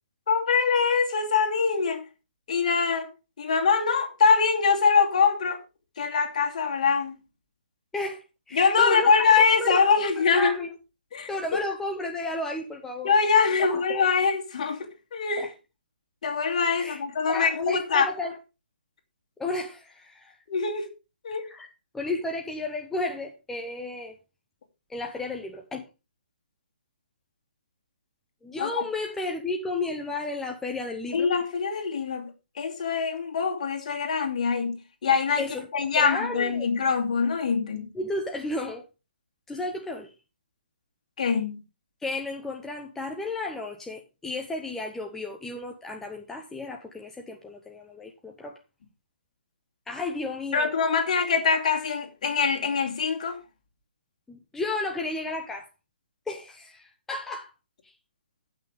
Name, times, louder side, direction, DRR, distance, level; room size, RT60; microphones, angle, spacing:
voice 1, 0.3-2.0 2.5-3.1 3.4-5.6 6.0-7.1 8.5-10.5 11.1-11.3 13.0-15.5 16.2-18.1 20.5-20.9 21.2-21.4 28.6-28.8 31.1-32.3 32.6-34.7 35.0-35.4 35.7-37.9 41.2-41.6 50.5-53.4, left 5 dB, 45° left, 2.6 m, -23 dB
voice 2, 7.9-10.7 11.3-13.1 13.6-14.1 15.4-15.5 16.7-18.4 19.4-20.4 21.5-21.7 21.9-24.2 24.9-25.8 28.4-31.3 35.4-35.7 36.0-36.7 37.9-38.8 39.5-40.1 42.0-48.6 49.9-50.7 54.3-55.7 56.3-57.5, left 2 dB, 5° left, 0.8 m, -33 dB
15.5 x 5.9 x 3.6 m
figure-of-eight pair, 135°, 5 cm